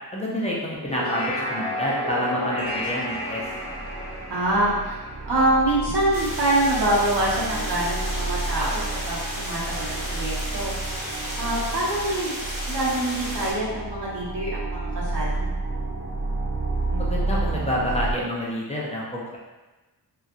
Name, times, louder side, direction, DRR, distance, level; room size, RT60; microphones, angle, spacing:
voice 1, 0.1-3.4 16.9-19.4, equal, 15° left, -6 dB, 0.4 m, -28 dB
sound 1, 0.7-6.3, left 1 dB, 35° left, 1.0 m, -32 dB
sound 2, 2.7-2.8 3.1-18.1, right 3 dB, 35° right, 0.5 m, -31 dB
voice 2, 4.3-5.0 5.2-8.8 9.1-10.7 11.4-12.3 12.7-15.5, right 1 dB, 85° right, -7 dB, 1.0 m, -25 dB
sound 3, 6.1-13.5, equal, 55° right, 1.0 m, -33 dB
2.9 x 2.3 x 2.5 m, 1.2 s
wide cardioid pair, 105°, 40 cm